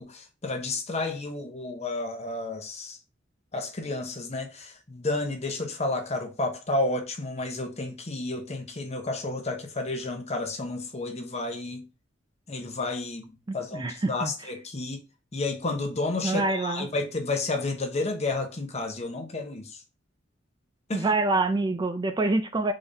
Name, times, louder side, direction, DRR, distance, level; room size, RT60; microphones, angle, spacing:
voice 1, 0.0-3.0 3.5-11.8 12.5-13.3 13.5-15.0 15.3-19.8 20.9-21.1, left 2 dB, 35° left, 0.9 m, -31 dB
voice 2, 13.5-14.3 16.2-16.9 20.9-22.7, right 2 dB, 25° right, 0.4 m, -26 dB
3.9 x 3.5 x 3.9 m
head